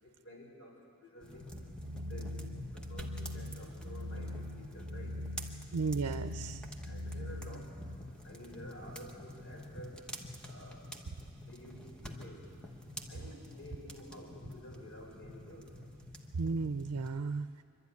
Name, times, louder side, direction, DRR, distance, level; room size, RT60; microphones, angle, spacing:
voice 1, 0.0-1.5 2.0-2.4 2.7-5.2 6.8-7.7 8.2-10.0 10.4-10.9 11.4-12.5 13.1-15.7, equal, 60° left, 0 dB, 3.9 m, -51 dB
sound 1, 1.2-17.1, equal, 5° left, 1.1 m, -48 dB
sound 2, 1.5-8.0, left 1 dB, 40° right, 1.8 m, -42 dB
voice 2, 5.7-6.6 16.4-17.6, right 4 dB, 80° right, 10 dB, 0.6 m, -34 dB
24.5 x 12.0 x 9.5 m, 2.4 s
head